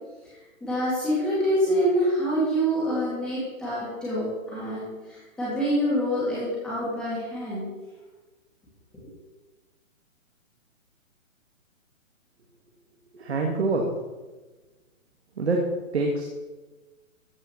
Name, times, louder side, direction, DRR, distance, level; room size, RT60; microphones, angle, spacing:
voice 1, 0.6-7.7, equal, ahead, -10 dB, 2.3 m, -26 dB
voice 2, 13.1-13.9 15.4-15.7 15.9-16.2, right 3 dB, 50° right, 1 dB, 1.7 m, -25 dB
14.0 x 5.5 x 6.8 m, 1.2 s
hypercardioid pair, 180°, 41 cm